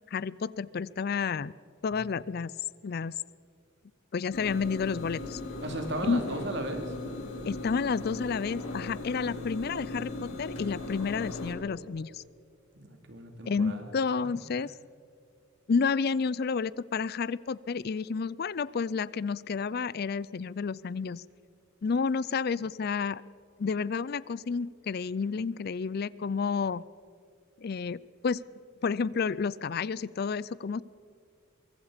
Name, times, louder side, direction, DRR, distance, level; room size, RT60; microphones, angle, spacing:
voice 1, 0.1-1.5 1.8-2.5 2.8-3.1 4.1-5.4 6.1-6.2 7.4-12.2 13.4-14.7 15.7-21.2 21.8-23.2 23.6-26.8 27.6-28.4 28.8-30.8, left 5 dB, 50° left, 20 dB, 0.4 m, -30 dB
sound 1, 4.3-11.5, left 2 dB, 85° left, 4.5 m, -38 dB
voice 2, 5.6-6.9 12.7-13.9, right 1 dB, 60° right, 5 dB, 2.8 m, -36 dB
23.5 x 22.5 x 5.1 m, 2.2 s
head